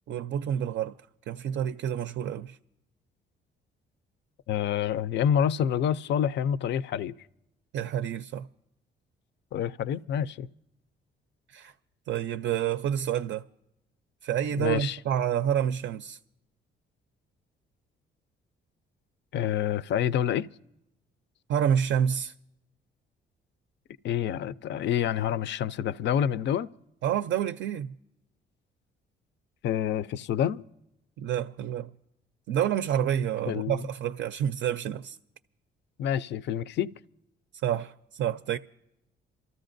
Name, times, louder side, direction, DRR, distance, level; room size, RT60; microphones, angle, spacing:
voice 1, 0.1-1.0 1.3-2.6 7.7-8.5 11.5-11.7 12.1-13.5 14.2-16.2 21.5-22.3 27.0-27.9 31.2-31.9 32.5-35.2 37.6-38.6, right 9 dB, 65° right, 0.4 m, -28 dB
voice 2, 4.5-7.1 9.5-10.5 14.6-15.0 19.3-20.5 24.0-26.7 29.6-30.6 33.5-33.8 36.0-36.9, left 9 dB, 65° left, 0.4 m, -27 dB
28.0 x 14.0 x 2.6 m
cardioid pair, 90°, 20 cm